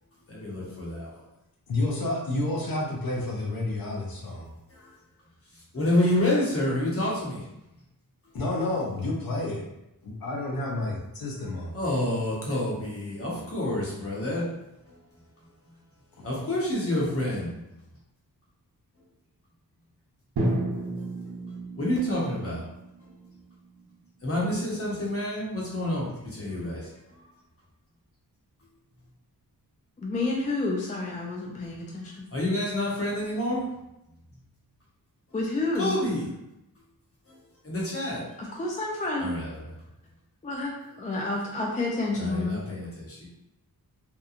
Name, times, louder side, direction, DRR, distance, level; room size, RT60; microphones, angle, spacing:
voice 1, 0.3-1.2 4.7-5.0 5.5-7.7 8.2-8.3 11.7-14.4 14.8-15.0 15.4-15.7 16.2-17.9 21.0-21.1 21.8-22.7 23.0-23.1 24.2-27.3 31.6-33.7 35.7-36.3 37.3-38.2 39.2-39.7 42.1-43.3, left 1 dB, 40° left, 1.0 m, -29 dB
voice 2, 1.7-4.4 8.3-9.6 10.0-11.7, left 2 dB, 70° left, 0.6 m, -30 dB
Drum, 20.4-24.4, right 1 dB, 75° right, 0.7 m, -33 dB
voice 3, 30.0-32.3 35.3-36.0 38.4-39.4 40.4-42.6, left 2 dB, 20° left, 0.4 m, -30 dB
2.9 x 2.2 x 2.4 m
wide cardioid pair, 85°, 37 cm